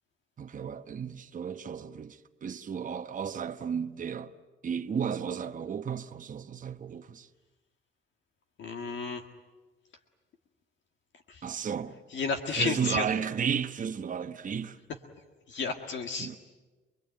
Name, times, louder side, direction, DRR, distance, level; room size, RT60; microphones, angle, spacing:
voice 1, 0.4-4.3 4.6-7.3 11.4-12.0 12.5-14.8 16.2-16.4, right 7 dB, 40° right, 1.0 m, -33 dB
voice 2, 8.6-9.2 11.3-11.4 12.1-13.1 15.5-16.4, left 5 dB, 70° left, 1.9 m, -32 dB
27.0 x 21.5 x 9.1 m
cardioid pair, 90°, 20 cm